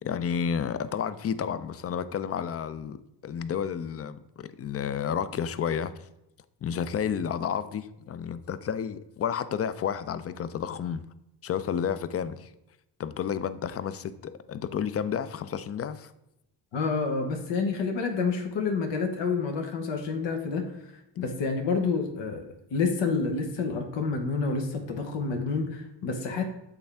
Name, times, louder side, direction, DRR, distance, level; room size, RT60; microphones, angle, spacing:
voice 1, 0.0-3.0 3.2-5.9 6.6-11.0 11.4-12.5 13.0-16.1, left 8 dB, 35° left, 13 dB, 0.4 m, -31 dB
voice 2, 16.7-20.9 21.2-22.4 22.7-26.4, left 4 dB, 80° left, 3 dB, 1.0 m, -28 dB
7.9 x 3.5 x 3.4 m, 0.87 s
cardioid pair, 80°, 43 cm